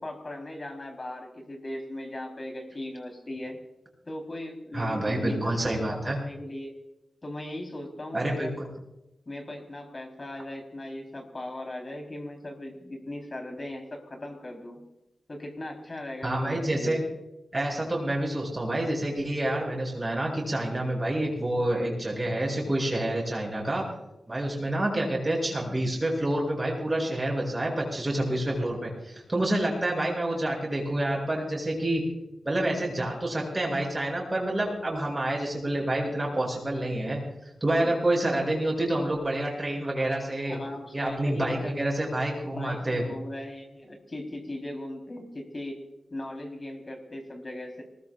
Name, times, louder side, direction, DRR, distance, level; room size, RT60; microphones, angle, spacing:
voice 1, 0.0-3.6 4.1-6.7 7.2-8.6 9.3-14.9 15.3-17.0 37.8-37.9 40.5-41.8 42.4-45.8 46.1-47.8, left 1 dB, 35° left, 2 dB, 4.2 m, -38 dB
voice 2, 4.7-6.2 8.1-8.6 16.2-17.0 17.5-23.8 24.3-32.0 32.4-37.2 37.6-40.6 40.9-43.0, right 1 dB, 20° right, -2 dB, 7.8 m, -28 dB
24.0 x 20.0 x 2.6 m, 0.91 s
wide cardioid pair, 120°, 0 cm